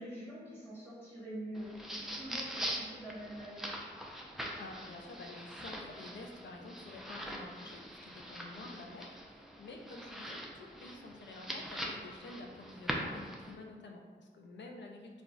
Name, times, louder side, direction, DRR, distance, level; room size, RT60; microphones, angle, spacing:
voice 1, 0.0-3.8, equal, 15° left, -8 dB, 1.1 m, -45 dB
sound 1, 1.5-13.6, equal, ahead, 0.3 m, -43 dB
voice 2, 4.6-15.2, left 2 dB, 75° left, 2 dB, 0.4 m, -49 dB
2.4 x 2.1 x 3.7 m, 1.5 s
wide cardioid pair, 75°, 19 cm